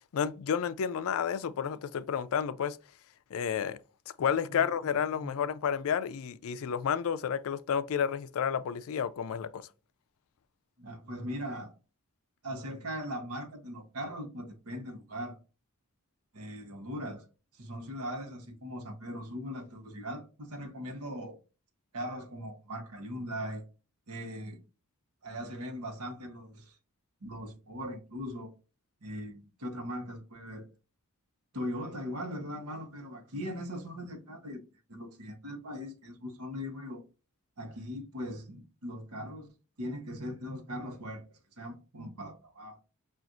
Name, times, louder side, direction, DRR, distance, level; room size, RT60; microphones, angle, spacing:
voice 1, 0.1-2.8 3.3-3.8 4.2-9.7, left 7 dB, 65° left, 0.4 m, -31 dB
voice 2, 10.8-11.7 12.4-15.4 16.3-17.3 17.5-21.4 21.9-23.6 24.1-24.6 25.2-26.8 27.2-28.5 29.0-30.7 31.5-34.6 34.9-37.0 37.6-39.5 39.8-41.3 41.6-42.8, equal, 85° right, 1.1 m, -40 dB
5.9 x 2.4 x 2.5 m
head